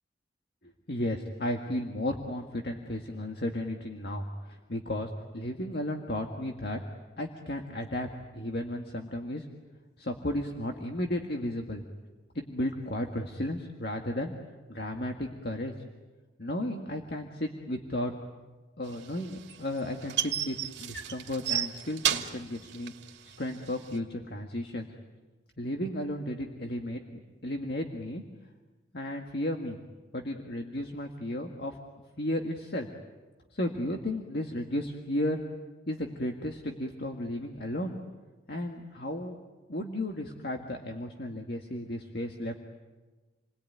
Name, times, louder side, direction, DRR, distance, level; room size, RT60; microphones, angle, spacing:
voice 1, 0.9-6.8 7.2-8.1 8.3-9.5 10.0-11.8 12.4-14.3 14.7-15.7 16.4-18.1 18.8-22.9 23.2-24.9 25.6-27.0 27.4-28.2 28.9-29.8 30.1-31.8 32.2-32.9 33.5-35.4 35.9-38.0 38.5-39.4 39.7-42.5, left 1 dB, 60° left, 3 dB, 1.9 m, -34 dB
sound 1, 18.9-24.0, right 10 dB, 70° right, 2.4 m, -32 dB
29.5 x 21.0 x 9.5 m, 1.3 s
head